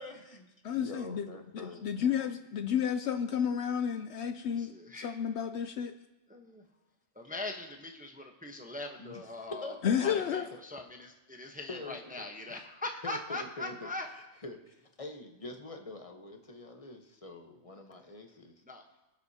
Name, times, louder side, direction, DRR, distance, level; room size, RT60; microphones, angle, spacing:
voice 1, 0.0-1.8 9.0-10.6 11.7-12.7 13.0-13.9 14.1-18.6, left 2 dB, 30° left, 4 dB, 1.1 m, -45 dB
voice 2, 0.6-1.3 1.5-5.9 9.8-10.5, left 8 dB, 70° left, 8 dB, 0.8 m, -31 dB
voice 3, 4.5-5.2 6.3-6.6 7.1-9.8 10.0-14.1 18.7-18.9, left 2 dB, 10° right, 3 dB, 0.8 m, -41 dB
23.5 x 7.9 x 2.8 m, 0.98 s
omnidirectional pair, 1.3 m